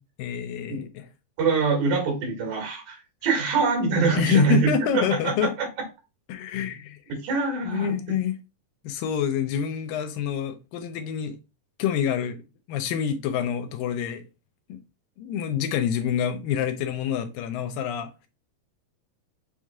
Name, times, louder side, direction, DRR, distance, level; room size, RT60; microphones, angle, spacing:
voice 1, 0.2-1.1 4.1-5.5 6.3-7.0 7.6-8.4 8.8-11.4 11.8-12.4 12.7-14.3 14.7-14.8 15.2-18.3, left 9 dB, 80° left, 2.2 m, -27 dB
voice 2, 1.4-5.5 7.2-7.9, right 4 dB, 75° right, 3.7 m, -24 dB
7.1 x 3.2 x 2.3 m
omnidirectional pair, 4.2 m